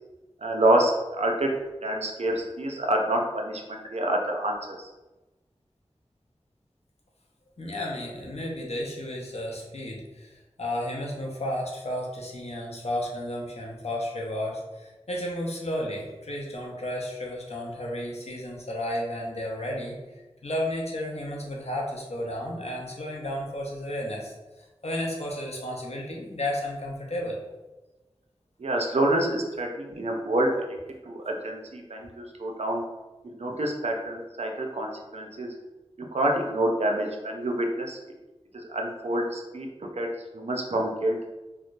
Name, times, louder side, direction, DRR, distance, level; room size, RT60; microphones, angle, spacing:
voice 1, 0.4-1.5 1.8-4.9 28.6-30.6 31.1-32.8 33.2-35.5 36.0-38.0 38.7-39.7 40.0-40.1 40.3-41.2, right 1 dB, 70° right, 2 dB, 0.5 m, -27 dB
voice 2, 7.6-10.3 10.6-20.0 20.4-24.3 24.8-27.4, left 1 dB, 70° left, -1 dB, 0.7 m, -32 dB
3.3 x 2.8 x 2.5 m, 1.1 s
wide cardioid pair, 55°, 11 cm